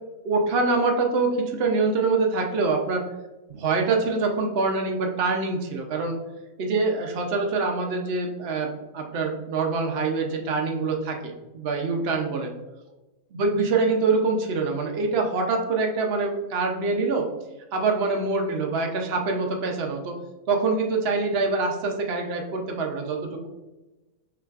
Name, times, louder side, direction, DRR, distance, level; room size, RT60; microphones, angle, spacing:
voice 1, 0.2-3.0 3.5-6.2 6.6-12.5 13.3-17.3 17.7-20.2 20.5-23.5, right 3 dB, 65° right, 2 dB, 0.6 m, -25 dB
5.7 x 3.0 x 2.4 m, 1.1 s
omnidirectional pair, 1.7 m